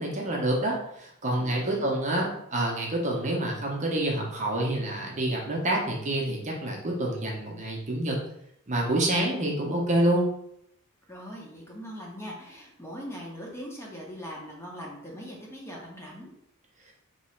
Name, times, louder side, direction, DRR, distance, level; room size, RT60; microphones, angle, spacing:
voice 1, 0.0-8.2 8.7-10.3 16.9-17.0, right 1 dB, 35° right, -1 dB, 0.7 m, -27 dB
voice 2, 1.4-1.9 11.1-16.3, equal, 10° left, -2 dB, 0.8 m, -41 dB
3.1 x 2.9 x 4.3 m, 0.75 s
head